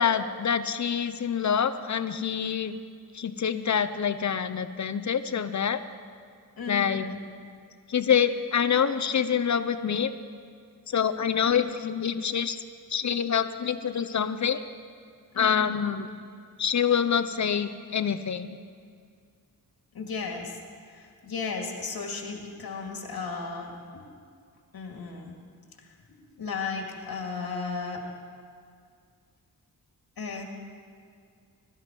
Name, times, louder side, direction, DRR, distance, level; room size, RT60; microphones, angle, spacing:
voice 1, 0.0-2.8 3.1-5.8 6.7-7.1 7.9-10.1 10.9-12.6 12.9-14.6 15.4-16.1 16.6-18.6, left 7 dB, 50° left, 11 dB, 0.8 m, -26 dB
voice 2, 6.6-7.2 11.4-11.6 15.3-15.9 19.9-20.6 20.9-24.1 24.7-25.4 26.1-28.0 30.2-30.4, left 4 dB, 80° left, 1 dB, 2.3 m, -35 dB
21.5 x 13.0 x 4.5 m, 2.2 s
wide cardioid pair, 95°, 36 cm